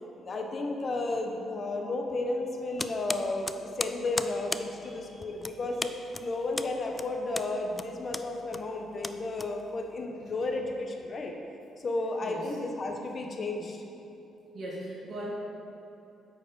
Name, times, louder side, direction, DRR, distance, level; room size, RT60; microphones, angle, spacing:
voice 1, 0.2-3.5 3.8-5.9 6.2-11.3 11.8-13.8, left 2 dB, 40° left, 2 dB, 1.0 m, -33 dB
sound 1, 2.8-10.0, left 2 dB, 20° left, 0.3 m, -37 dB
voice 2, 4.8-5.3 10.3-10.4 12.2-12.5 14.5-15.3, right 1 dB, 50° right, -7 dB, 1.6 m, -40 dB
8.4 x 4.8 x 5.4 m, 2.9 s
cardioid pair, 90°, 0 cm